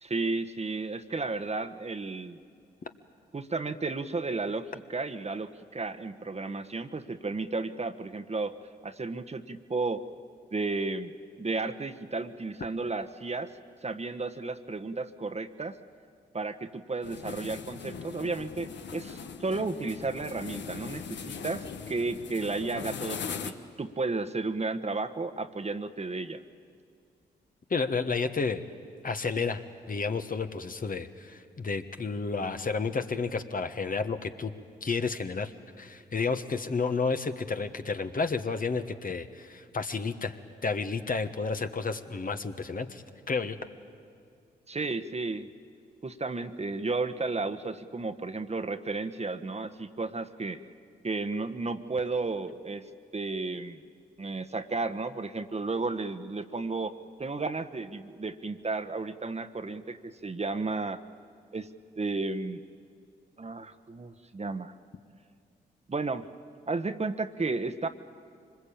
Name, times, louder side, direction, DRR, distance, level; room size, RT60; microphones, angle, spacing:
voice 1, 0.0-2.4 3.3-8.6 8.8-10.0 10.5-11.1 11.4-13.5 13.8-15.8 16.3-26.4 44.7-45.5 46.0-50.6 51.0-52.8 53.1-53.8 54.2-56.9 57.2-61.0 61.5-61.7 62.0-62.6 63.4-64.7 65.9-66.2 66.7-67.9, right 3 dB, 35° right, 8 dB, 1.2 m, -33 dB
sound 1, 17.0-23.5, left 6 dB, 65° left, 1.2 m, -40 dB
voice 2, 27.7-28.6 29.0-34.5 34.8-40.3 40.6-43.6, left 4 dB, 45° left, 7 dB, 1.4 m, -31 dB
24.5 x 20.5 x 8.7 m, 2.3 s
supercardioid pair, 40°, 20 cm